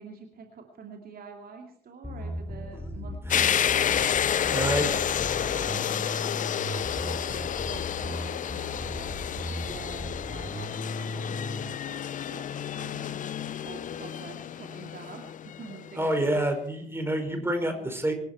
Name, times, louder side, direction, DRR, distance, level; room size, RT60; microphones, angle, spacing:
voice 1, 0.0-4.4 4.7-9.1 9.6-12.0 12.3-16.4 17.4-18.0, right 5 dB, 45° right, 3 dB, 2.4 m, -47 dB
Bass guitar, 2.0-11.6, left 1 dB, 10° left, 3.9 m, -37 dB
sound 1, 3.3-16.0, left 9 dB, 40° left, 0.6 m, -30 dB
voice 2, 4.2-4.9 15.9-18.1, right 1 dB, 10° right, 6 dB, 5.1 m, -28 dB
24.5 x 11.5 x 4.5 m, 0.62 s
figure-of-eight pair, 45°, 21 cm